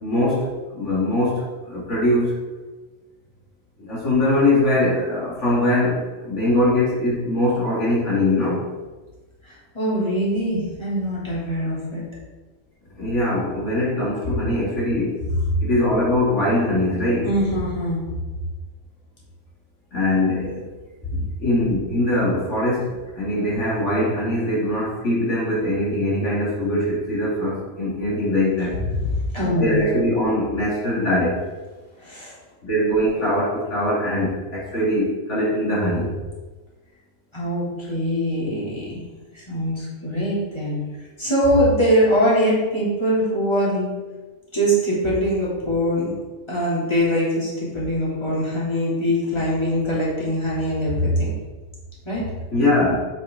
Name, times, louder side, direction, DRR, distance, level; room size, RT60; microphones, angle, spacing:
voice 1, 0.0-2.4 3.8-8.6 13.0-15.2 15.6-17.3 19.9-20.6 21.4-28.8 29.6-31.4 32.6-36.2 52.5-53.0, left 1 dB, 75° left, -5 dB, 2.2 m, -22 dB
voice 2, 9.4-12.0 15.2-15.3 17.2-18.0 21.1-21.3 28.9-29.1 29.3-29.8 32.0-32.4 37.3-39.0 39.3-40.8 41.2-43.9 44.5-46.1 46.5-51.3 52.0-52.4, equal, 20° left, -8 dB, 2.9 m, -22 dB
7.6 x 7.0 x 3.7 m, 1.2 s
omnidirectional pair, 1.2 m